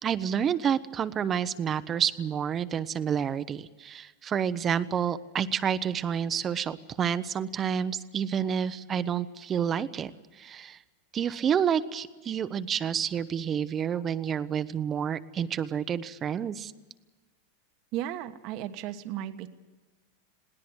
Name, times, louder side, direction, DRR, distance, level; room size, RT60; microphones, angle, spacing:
voice 1, 0.0-10.8 11.1-16.7, right 8 dB, 30° right, 12 dB, 0.8 m, -29 dB
voice 2, 17.9-19.5, right 12 dB, 55° right, 9 dB, 1.3 m, -35 dB
21.0 x 17.5 x 8.0 m, 1.2 s
hypercardioid pair, 110°, 0 cm